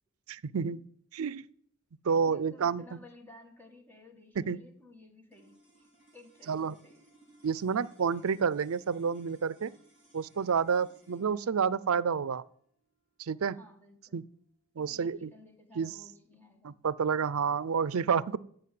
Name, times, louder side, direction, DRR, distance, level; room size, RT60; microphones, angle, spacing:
voice 1, 0.3-0.8 1.1-1.4 2.0-2.8 4.4-4.6 6.5-6.8 7.4-9.7 10.1-12.4 13.2-13.6 14.1-14.2 14.8-15.3 15.8-15.9 16.6-18.4, right 6 dB, 80° right, 19 dB, 0.5 m, -29 dB
voice 2, 2.1-7.1 13.4-14.2 14.8-16.8, left 2 dB, 10° left, 4 dB, 1.8 m, -56 dB
sound 1, 5.3-15.7, right 1 dB, 30° left, 4.6 m, -64 dB
14.5 x 5.2 x 9.4 m, 0.64 s
head